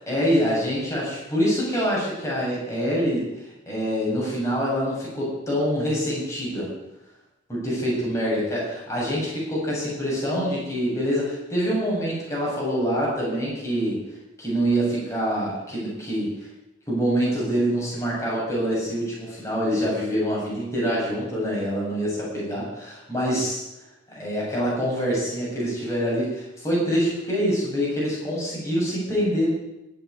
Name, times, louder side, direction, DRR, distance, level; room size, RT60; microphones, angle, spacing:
voice 1, 0.0-3.3 3.7-6.7 7.5-8.6 8.9-14.0 14.4-16.3 16.9-23.6 24.1-29.5, equal, 15° left, -5 dB, 7.6 m, -25 dB
17.5 x 8.4 x 9.6 m, 0.95 s
head